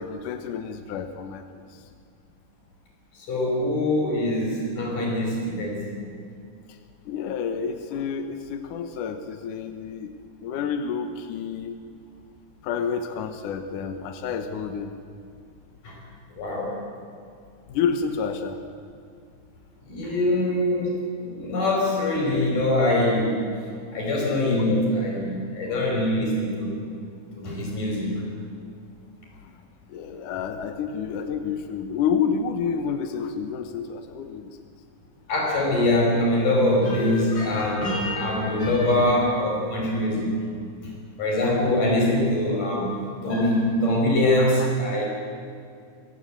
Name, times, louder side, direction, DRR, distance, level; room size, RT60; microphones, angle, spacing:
voice 1, 0.0-1.4 7.1-10.1 10.4-11.8 12.6-14.9 17.7-18.6 29.4-29.5 29.9-34.6, left 6 dB, 75° left, 7 dB, 1.9 m, -29 dB
voice 2, 3.2-5.8 15.8-16.0 16.3-16.8 19.9-23.4 23.9-26.9 27.4-28.1 35.3-40.4 41.2-45.0, left 1 dB, 45° left, -2 dB, 7.3 m, -23 dB
24.0 x 17.0 x 8.0 m, 2.3 s
omnidirectional pair, 5.2 m